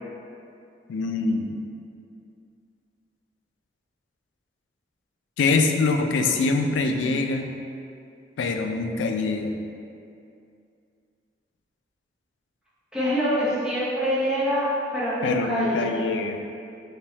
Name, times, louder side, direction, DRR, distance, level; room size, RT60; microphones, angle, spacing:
voice 1, 0.9-1.6 5.4-7.5 8.4-9.6 15.2-16.4, left 3 dB, 90° left, 5 dB, 0.3 m, -24 dB
voice 2, 12.9-16.0, equal, 5° right, -10 dB, 0.7 m, -25 dB
3.4 x 2.8 x 3.1 m, 2.5 s
head